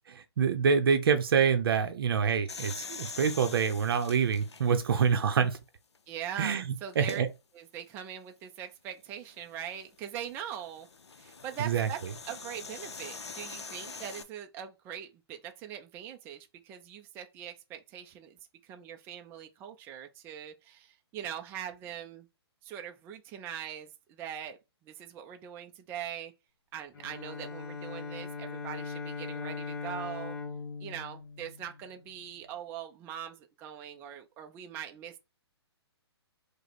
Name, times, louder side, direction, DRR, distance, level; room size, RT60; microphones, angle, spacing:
voice 1, 0.1-5.6 6.4-6.7 7.0-7.3 11.6-11.9, right 6 dB, 55° right, 0.6 m, -26 dB
Toy Train Couple Up, 2.5-5.4 6.0-6.1 6.9-7.2 9.3-14.2, left 5 dB, 80° left, 0.6 m, -44 dB
voice 2, 6.1-7.2 7.5-10.9 11.2-12.0 12.3-18.4 18.6-22.3 22.6-26.3 26.7-30.4 30.8-35.2, right 9 dB, 15° right, 0.3 m, -42 dB
Bowed string instrument, 26.9-32.2, left 5 dB, 55° left, 1.3 m, -40 dB
4.9 x 2.1 x 4.0 m
figure-of-eight pair, 135°, 14 cm